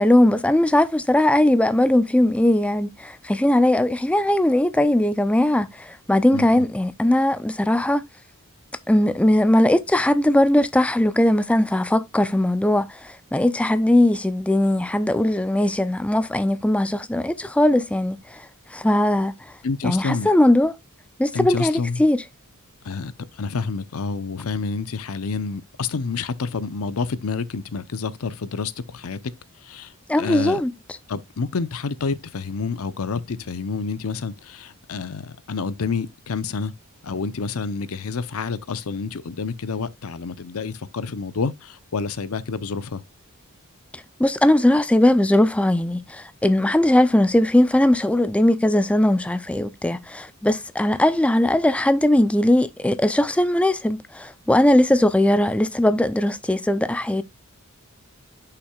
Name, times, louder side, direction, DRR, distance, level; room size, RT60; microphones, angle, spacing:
voice 1, 0.0-8.0 8.9-18.5 18.7-19.3 19.8-20.7 21.2-22.2 30.1-30.7 43.9-57.2, left 1 dB, 5° left, 0.4 m, -19 dB
voice 2, 6.3-6.7 19.6-20.3 21.3-22.0 22.8-29.2 29.6-30.6 31.1-36.7 37.0-43.0, left 4 dB, 75° left, 0.6 m, -28 dB
9.9 x 5.8 x 2.3 m
head